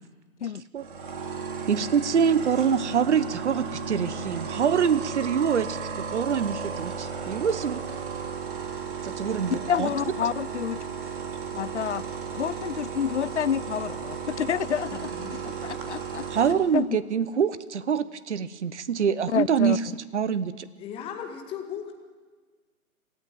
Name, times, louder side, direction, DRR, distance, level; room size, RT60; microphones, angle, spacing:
sound 1, 0.8-16.5, right 6 dB, 35° right, 2.9 m, -34 dB
voice 1, 1.7-7.8 9.0-9.9 16.3-20.7, right 7 dB, 50° right, 16 dB, 1.1 m, -25 dB
voice 2, 9.5-10.8 11.5-12.0 12.3-15.1 15.6-16.2 16.7-17.0 19.3-19.8, left 8 dB, 50° left, 21 dB, 0.6 m, -28 dB
voice 3, 14.9-15.4 20.8-21.9, left 8 dB, 10° left, 4 dB, 1.8 m, -37 dB
26.5 x 14.0 x 9.2 m, 1.4 s
figure-of-eight pair, 135°, 44 cm